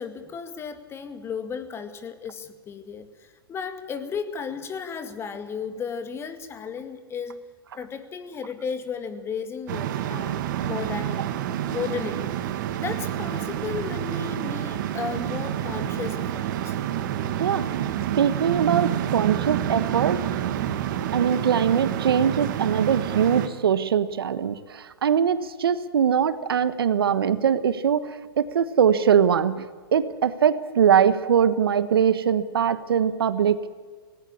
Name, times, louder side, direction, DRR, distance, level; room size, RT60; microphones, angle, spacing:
voice 1, 0.0-7.4 7.7-11.2 11.6-16.7, left 6 dB, 20° left, 9 dB, 2.0 m, -34 dB
sound 1, 9.7-23.5, right 11 dB, 55° right, 1.9 m, -28 dB
voice 2, 18.2-20.2 21.1-29.7 29.9-33.7, right 8 dB, 75° right, 13 dB, 1.3 m, -22 dB
19.0 x 18.0 x 8.5 m, 1.5 s
hypercardioid pair, 120°, 12 cm